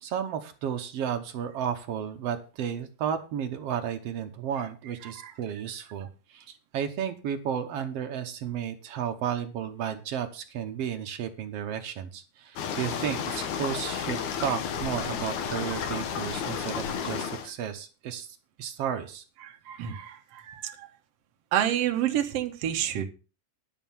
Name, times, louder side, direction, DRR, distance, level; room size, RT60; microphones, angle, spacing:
voice 1, 0.0-19.2, right 8 dB, 80° right, 5 dB, 1.4 m, -33 dB
sound 1, 12.6-17.5, left 7 dB, 65° left, 2.3 m, -32 dB
voice 2, 19.4-20.9 21.5-23.0, right 11 dB, 60° right, 5 dB, 1.8 m, -29 dB
11.5 x 5.1 x 7.2 m, 0.34 s
omnidirectional pair, 4.1 m